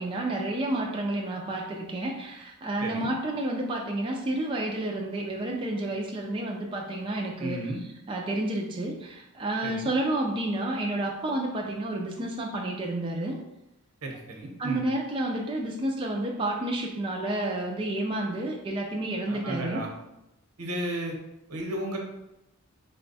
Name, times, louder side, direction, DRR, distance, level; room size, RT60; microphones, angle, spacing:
voice 1, 0.0-7.7 8.1-13.4 14.6-19.8, right 1 dB, 25° right, 0 dB, 0.4 m, -30 dB
voice 2, 2.8-3.1 7.4-7.8 9.6-9.9 14.0-14.8 19.3-19.9 20.6-21.2 21.5-22.0, right 1 dB, 90° right, 0 dB, 0.9 m, -33 dB
4.0 x 2.2 x 3.9 m, 0.90 s
head